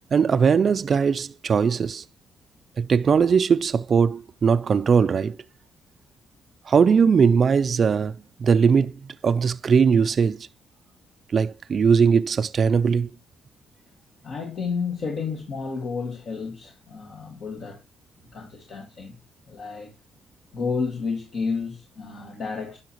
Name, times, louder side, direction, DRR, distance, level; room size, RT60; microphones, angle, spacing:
voice 1, 0.1-2.0 2.8-5.4 6.7-8.1 8.4-10.4 11.3-13.1, right 6 dB, 45° right, 0.4 m, -20 dB
voice 2, 14.2-17.8 18.3-19.2 19.5-19.9 20.5-22.8, left 5 dB, 60° left, 1.8 m, -31 dB
10.5 x 5.7 x 2.9 m
cardioid pair, 90°, 0 cm